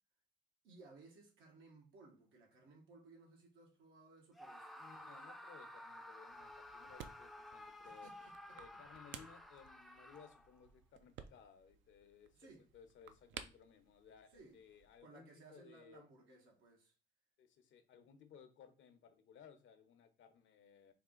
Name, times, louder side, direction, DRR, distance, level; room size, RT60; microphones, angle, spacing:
voice 1, 0.6-5.0 7.8-8.6 12.3-12.7 14.3-14.6 15.0-16.9, right 3 dB, 90° right, 1.3 m, -61 dB
Screaming, 4.3-10.6, left 1 dB, ahead, 0.4 m, -54 dB
voice 2, 4.8-8.1 8.5-12.4 12.7-16.0 17.4-20.9, left 7 dB, 75° left, 0.8 m, -61 dB
sound 1, 6.3-15.0, right 8 dB, 75° right, 0.5 m, -57 dB
3.5 x 2.5 x 3.8 m
cardioid pair, 90°, 20 cm